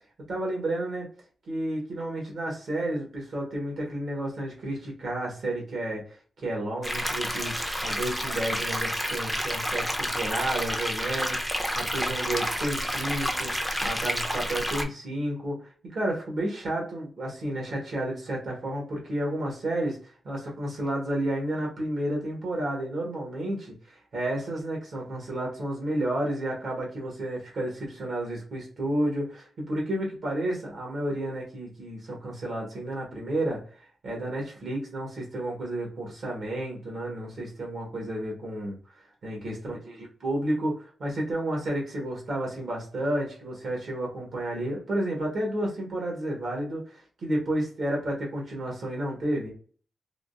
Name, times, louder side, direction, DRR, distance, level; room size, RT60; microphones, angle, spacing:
voice 1, 0.3-1.1 1.5-6.2 6.4-13.5 13.8-33.6 34.0-38.8 39.2-49.5, right 1 dB, 65° right, -2 dB, 1.2 m, -31 dB
sound 1, 6.8-14.8, equal, 5° right, 0.4 m, -30 dB
3.6 x 2.3 x 2.5 m, 0.43 s
wide cardioid pair, 135°, 0 cm